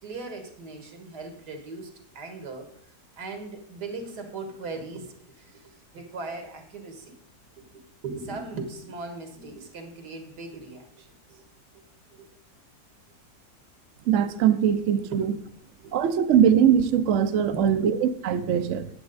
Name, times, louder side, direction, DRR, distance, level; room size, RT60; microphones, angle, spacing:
voice 1, 0.0-7.2 7.6-11.4 12.1-12.3 14.3-14.4 15.1-15.3 15.8-16.0 17.5-17.9, right 3 dB, 80° right, 2.1 m, -39 dB
voice 2, 14.1-15.3 15.9-18.9, right 8 dB, 65° right, 0.8 m, -21 dB
9.4 x 8.6 x 4.0 m
omnidirectional pair, 1.7 m